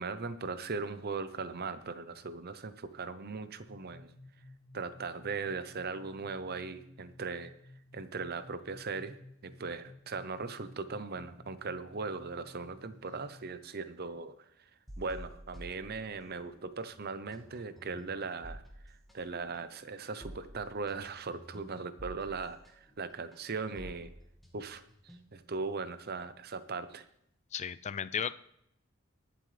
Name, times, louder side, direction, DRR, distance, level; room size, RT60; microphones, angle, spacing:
voice 1, 0.0-4.1 4.7-7.5 7.9-9.2 9.4-14.3 15.0-18.6 18.9-24.1 24.5-27.0, right 4 dB, 45° right, 12 dB, 0.7 m, -39 dB
sound 1, 3.6-13.5, left 1 dB, 85° left, 1.9 m, -55 dB
sound 2, 14.9-16.6 16.9-25.5, equal, ahead, 1.8 m, -50 dB
voice 2, 27.5-28.3, left 8 dB, 30° left, 15 dB, 0.3 m, -34 dB
21.0 x 7.8 x 3.3 m, 0.73 s
head